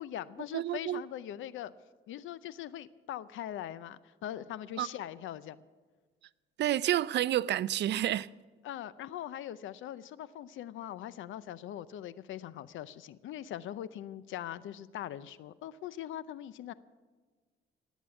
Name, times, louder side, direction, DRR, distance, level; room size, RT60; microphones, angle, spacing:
voice 1, 0.0-1.7 2.1-5.6 8.6-16.7, left 11 dB, 80° left, 0.6 m, -41 dB
voice 2, 0.5-1.0 4.8-4.9 6.6-8.3, right 12 dB, 60° right, 0.4 m, -29 dB
18.5 x 8.3 x 7.0 m
cardioid pair, 90°, 20 cm